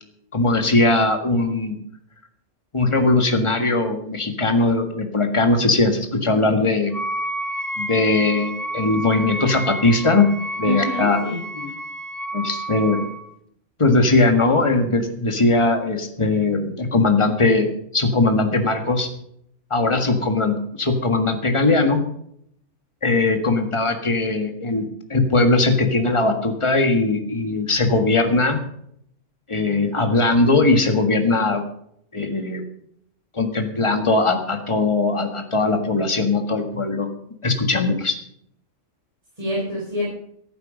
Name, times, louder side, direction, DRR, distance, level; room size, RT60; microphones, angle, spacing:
voice 1, 0.3-1.8 2.7-6.9 7.8-10.3 10.6-11.2 12.3-13.0 13.8-19.1 19.7-22.0 23.0-28.6 29.5-31.6 32.1-32.6 33.3-37.1 37.4-38.1, left 3 dB, 25° left, 5 dB, 1.7 m, -20 dB
Wind instrument woodwind instrument, 6.9-13.3, right 1 dB, ahead, 1.1 m, -30 dB
voice 2, 10.6-11.7 39.4-40.1, equal, 25° right, -5 dB, 4.5 m, -27 dB
14.5 x 11.5 x 5.2 m, 0.70 s
omnidirectional pair, 1.3 m